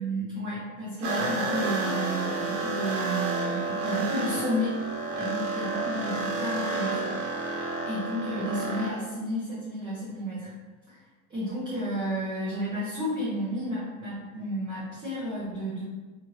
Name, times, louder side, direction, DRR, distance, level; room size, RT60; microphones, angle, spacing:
voice 1, 0.0-4.8 5.1-7.6 7.8-10.5 10.9-11.0 11.3-15.8, equal, 10° right, -10 dB, 0.4 m, -32 dB
sound 1, 1.0-8.9, right 3 dB, 65° right, 0.9 m, -30 dB
2.9 x 2.4 x 3.1 m, 1.3 s
supercardioid pair, 155°, 41 cm